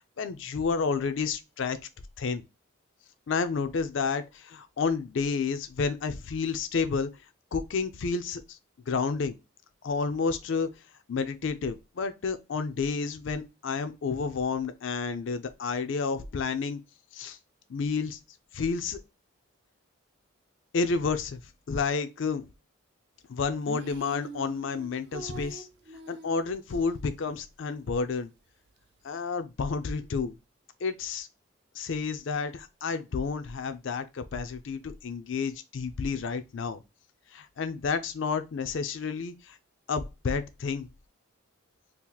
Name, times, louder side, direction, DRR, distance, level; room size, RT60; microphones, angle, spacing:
voice 1, 0.2-1.8 2.2-2.4 3.3-7.1 7.5-8.6 8.9-9.4 9.8-10.7 11.1-16.8 17.1-17.4 17.7-18.2 18.5-19.0 20.7-21.4 21.7-22.5 23.3-25.7 26.1-28.3 29.0-30.3 30.8-31.3 31.7-36.8 37.3-39.6 39.9-40.9, left 5 dB, 60° left, 0.4 m, -30 dB
sound 1, 23.6-26.8, right 3 dB, 50° right, 0.5 m, -43 dB
2.8 x 2.5 x 3.7 m
head